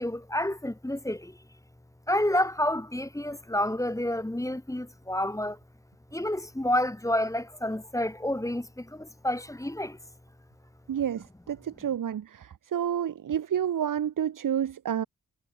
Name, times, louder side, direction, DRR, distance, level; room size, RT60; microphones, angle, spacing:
voice 1, 0.0-1.4 2.1-5.6 6.1-10.0, left 1 dB, 10° left, 1.4 m, -29 dB
voice 2, 10.9-15.1, right 9 dB, 75° right, 1.1 m, -29 dB
cardioid pair, 45°, 33 cm